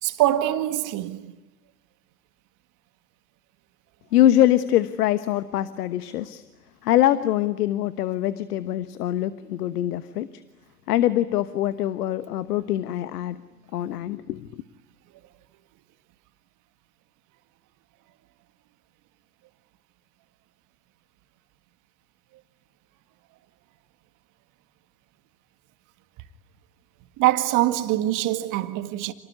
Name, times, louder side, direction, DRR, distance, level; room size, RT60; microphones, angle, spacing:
voice 1, 0.0-1.3 27.2-29.1, right 14 dB, 40° right, 1.9 m, -23 dB
voice 2, 4.1-6.4 6.8-10.3 10.9-13.4 13.7-14.6, left 12 dB, 65° left, 1.3 m, -23 dB
28.5 x 19.5 x 9.8 m
hypercardioid pair, 110°, 49 cm